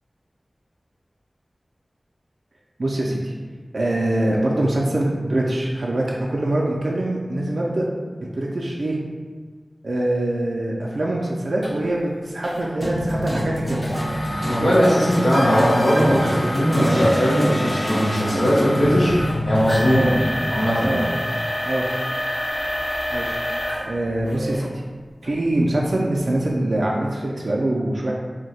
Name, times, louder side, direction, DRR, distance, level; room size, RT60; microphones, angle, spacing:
voice 1, 2.8-3.3 3.7-7.9 8.2-9.0 9.8-13.8 14.3-14.7 19.9-20.1 20.8-21.0 21.6-21.9 23.1-23.4 23.9-24.7 25.2-28.1, right 1 dB, 70° right, -3 dB, 0.3 m, -24 dB
sound 1, 11.6-11.7 12.4-12.6 13.8-24.7 25.2-25.3 25.9-26.1, left 1 dB, 45° left, 1.3 m, -29 dB
sound 2, 12.8-21.0, equal, 5° left, 0.7 m, -28 dB
voice 2, 14.4-19.1 19.4-20.1 20.5-21.0, equal, 65° left, -11 dB, 0.9 m, -19 dB
2.7 x 2.1 x 4.0 m, 1.5 s
wide cardioid pair, 70°, 0 cm